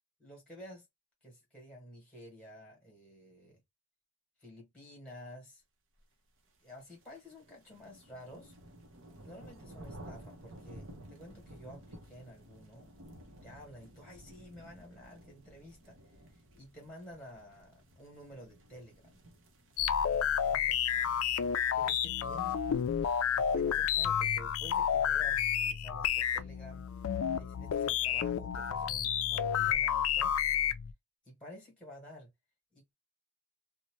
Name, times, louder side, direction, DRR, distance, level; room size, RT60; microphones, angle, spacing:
voice 1, 0.2-0.9 1.2-3.6 4.4-5.6 6.6-8.5 9.2-15.9 16.3-19.2 20.4-20.7 21.1-21.2 21.7-22.9 23.2-26.9 27.4-30.4 31.2-32.3 32.7-32.9, equal, 5° left, 1.4 m, -51 dB
sound 1, 6.5-24.1, right 1 dB, 60° right, 0.7 m, -54 dB
sound 2, 19.8-30.9, left 9 dB, 65° left, 0.3 m, -30 dB
2.7 x 2.1 x 3.0 m
head